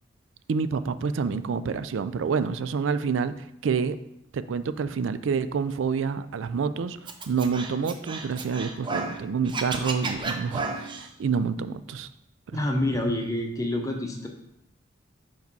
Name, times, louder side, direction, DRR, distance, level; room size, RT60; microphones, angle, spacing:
voice 1, 0.5-4.0 4.3-7.0 7.3-12.1 12.5-12.6, right 5 dB, 85° right, 13 dB, 0.4 m, -28 dB
Scratching (performance technique), 7.1-9.2 9.5-11.1, right 3 dB, 25° right, 0.5 m, -32 dB
voice 2, 12.5-14.3, left 1 dB, 15° left, 3 dB, 0.7 m, -27 dB
4.9 x 4.6 x 5.3 m, 0.81 s
head